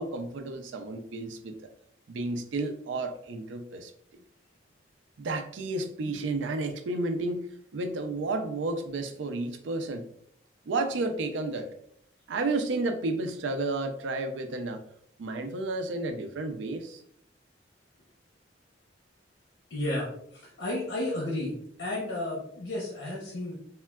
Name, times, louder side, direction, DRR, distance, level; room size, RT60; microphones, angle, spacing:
voice 1, 0.0-1.5 2.1-3.9 5.2-10.0 10.7-11.7 12.3-14.8 15.2-17.0, right 2 dB, 80° right, 7 dB, 0.4 m, -32 dB
voice 2, 19.7-20.1 20.3-23.5, left 1 dB, 80° left, -4 dB, 0.7 m, -32 dB
3.6 x 2.2 x 2.2 m, 0.69 s
head